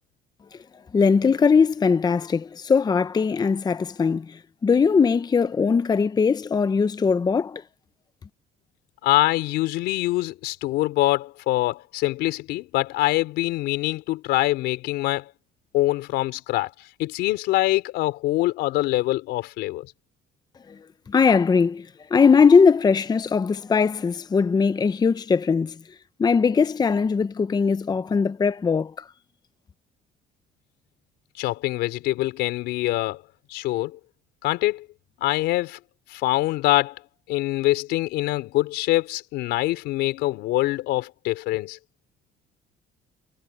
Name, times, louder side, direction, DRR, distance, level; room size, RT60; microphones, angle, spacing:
voice 1, 0.9-7.6 20.7-20.8 21.1-25.8 26.2-29.0, left 5 dB, 25° left, 0.7 m, -20 dB
voice 2, 9.0-15.3 15.7-19.9 31.4-34.0 34.4-34.9 35.2-35.8 36.1-37.0 37.3-41.8, left 17 dB, 90° left, 4.1 m, -24 dB
cardioid pair, 110°, 17 cm